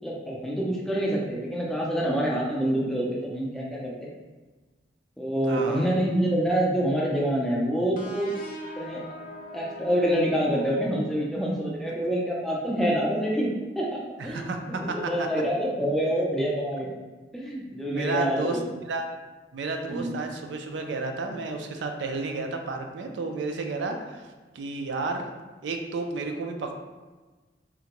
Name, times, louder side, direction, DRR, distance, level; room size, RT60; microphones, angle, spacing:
voice 1, 0.0-4.1 5.2-8.3 8.8-9.0 9.5-13.5 13.8-16.9 17.3-18.6 19.9-20.1, equal, ahead, -4 dB, 0.4 m, -26 dB
voice 2, 5.5-6.1 14.2-15.3 17.9-18.6 18.9-19.1 19.5-24.2 24.5-25.3 25.6-26.7, right 3 dB, 80° right, 4 dB, 0.4 m, -32 dB
sound 1, 8.0-11.5, left 1 dB, 50° left, 0.6 m, -41 dB
3.6 x 2.2 x 2.9 m, 1.3 s
head